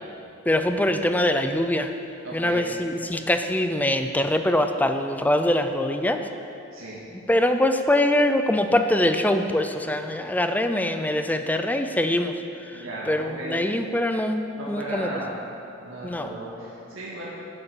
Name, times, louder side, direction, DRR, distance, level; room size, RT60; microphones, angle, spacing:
voice 1, 0.5-1.9 2.3-6.2 7.3-12.3 13.1-15.1 16.0-16.3, left 1 dB, 10° left, 7 dB, 0.5 m, -23 dB
voice 2, 2.2-2.6 6.7-7.0 12.7-13.6 14.6-15.4 15.8-17.2, right 1 dB, 80° right, -6 dB, 2.2 m, -36 dB
11.0 x 8.3 x 7.0 m, 2.7 s
head